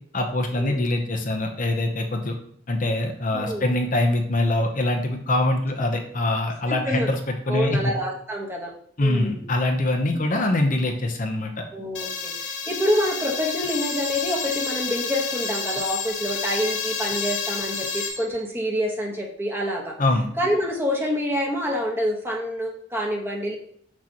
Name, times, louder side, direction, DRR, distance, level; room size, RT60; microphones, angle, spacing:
voice 1, 0.1-2.3 2.7-7.2 7.5-7.9 9.0-11.6 20.0-20.3, left 1 dB, 45° left, 4 dB, 0.8 m, -23 dB
voice 2, 3.3-3.7 6.8-7.1 7.5-8.7 9.0-9.4 10.1-10.2 11.7-19.9 20.4-23.5, equal, 15° right, -1 dB, 1.2 m, -27 dB
sound 1, 11.9-18.1, left 6 dB, 75° left, 1.1 m, -30 dB
sound 2, 12.9-13.1 13.6-14.7 15.4-16.8 17.1-18.5, left 3 dB, 35° right, 1.7 m, -35 dB
6.2 x 5.9 x 2.9 m, 0.64 s
head